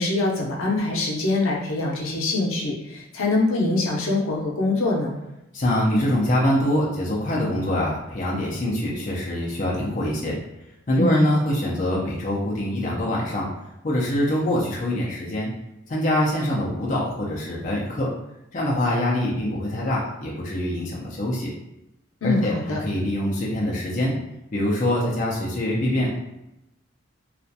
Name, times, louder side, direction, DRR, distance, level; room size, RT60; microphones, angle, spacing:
voice 1, 0.0-5.2 11.0-11.3 22.2-22.8, left 2 dB, 85° left, -2 dB, 0.6 m, -24 dB
voice 2, 5.5-10.3 10.9-13.5 13.8-15.5 15.9-18.1 18.5-21.5 22.2-24.2 24.5-26.1, left 1 dB, 40° left, -4 dB, 0.4 m, -24 dB
2.4 x 2.1 x 2.6 m, 0.89 s
head